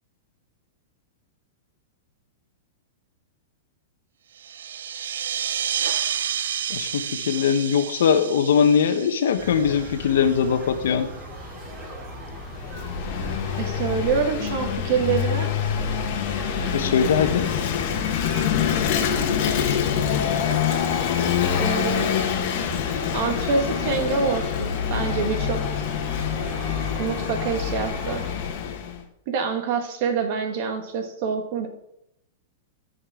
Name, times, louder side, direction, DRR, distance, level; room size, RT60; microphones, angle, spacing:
sound 1, 4.4-10.5, right 9 dB, 80° right, 0.4 m, -30 dB
voice 1, 6.7-11.1 16.7-17.5, left 7 dB, 75° left, 8 dB, 1.1 m, -21 dB
sound 2, 9.4-28.3, equal, 15° right, 3.4 m, -38 dB
Vehicle / Engine, 12.4-29.0, left 8 dB, 55° left, 1.3 m, -25 dB
voice 2, 13.6-15.5 21.6-22.3 23.1-25.6 27.0-28.2 29.3-31.7, right 5 dB, 55° right, 5 dB, 1.8 m, -26 dB
14.0 x 5.4 x 3.8 m, 0.78 s
hypercardioid pair, 130°, 0 cm